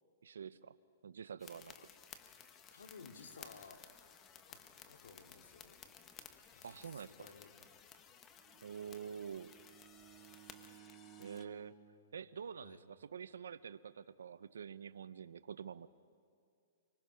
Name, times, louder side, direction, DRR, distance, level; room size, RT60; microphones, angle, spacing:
voice 1, 0.2-0.7 1.0-1.8 6.6-7.1 8.6-9.5 11.2-11.8 12.1-15.9, right 7 dB, 85° right, 15 dB, 0.6 m, -47 dB
sound 1, 1.4-11.5, left 8 dB, 25° left, 1.3 m, -57 dB
voice 2, 2.7-3.8 4.5-4.6 4.9-5.8 6.5-7.6 12.6-12.8, left 5 dB, 85° left, 4 dB, 2.5 m, -56 dB
Bowed string instrument, 8.3-13.0, right 12 dB, 30° right, 1.5 m, -60 dB
26.0 x 24.5 x 5.7 m, 2.4 s
hypercardioid pair, 145°, 0 cm